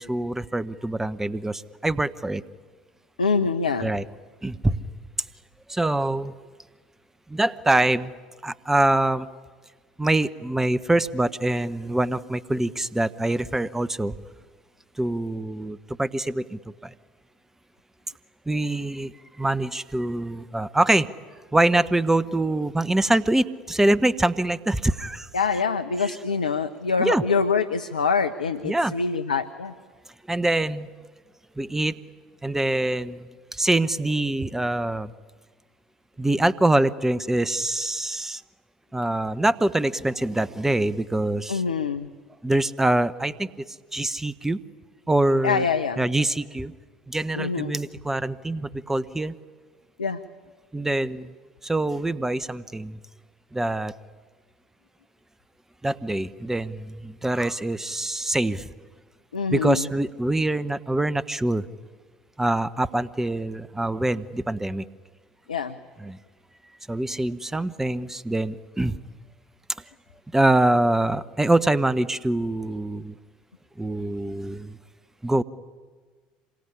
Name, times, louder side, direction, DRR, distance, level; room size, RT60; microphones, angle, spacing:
voice 1, 0.0-2.4 3.8-4.0 4.4-4.8 5.7-6.3 7.3-8.1 8.4-9.3 10.0-14.1 15.0-16.9 18.5-21.1 21.5-25.3 26.0-26.1 27.0-27.2 28.6-29.0 30.3-30.9 31.6-31.9 32.4-35.1 36.2-38.4 38.9-41.6 42.4-44.6 45.1-45.6 46.0-46.7 47.1-49.3 50.7-51.3 51.6-53.0 53.5-53.9 55.8-58.7 59.5-61.7 62.4-64.8 66.0-66.2 66.9-69.0 70.3-73.1 73.8-74.8 75.2-75.4, right 1 dB, 10° right, 16 dB, 0.9 m, -24 dB
voice 2, 3.2-3.9 25.3-29.7 41.5-42.1 45.4-46.0 47.3-47.7 50.0-50.2 59.3-59.9 65.5-65.7, left 5 dB, 85° left, 8 dB, 0.9 m, -25 dB
26.5 x 23.0 x 9.9 m, 1.5 s
hypercardioid pair, 70°, 4 cm